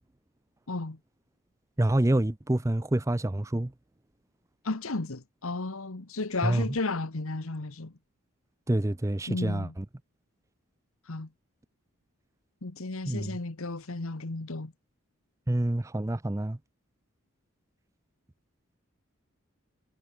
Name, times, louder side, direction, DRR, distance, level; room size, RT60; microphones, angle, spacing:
voice 1, 0.7-1.0 4.6-7.9 9.3-9.7 11.0-11.3 12.6-14.7, left 3 dB, 70° left, 1.3 m, -33 dB
voice 2, 1.8-3.7 6.4-6.7 8.7-9.8 13.1-13.4 15.5-16.6, right 1 dB, 15° right, 0.5 m, -27 dB
head